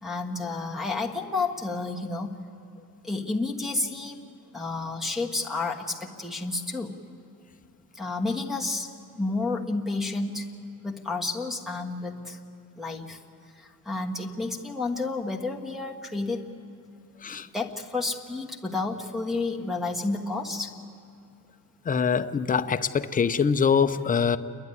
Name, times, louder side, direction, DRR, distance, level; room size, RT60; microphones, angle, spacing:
voice 1, 0.0-2.4 3.0-4.2 4.5-7.0 7.9-8.9 9.2-10.4 10.8-12.4 12.8-13.2 13.6-16.4 17.5-20.7, left 3 dB, ahead, -3 dB, 1.4 m, -30 dB
voice 2, 21.9-24.4, left 6 dB, 25° left, 9 dB, 0.6 m, -24 dB
28.5 x 11.5 x 9.6 m, 2.5 s
cardioid pair, 140°, 37 cm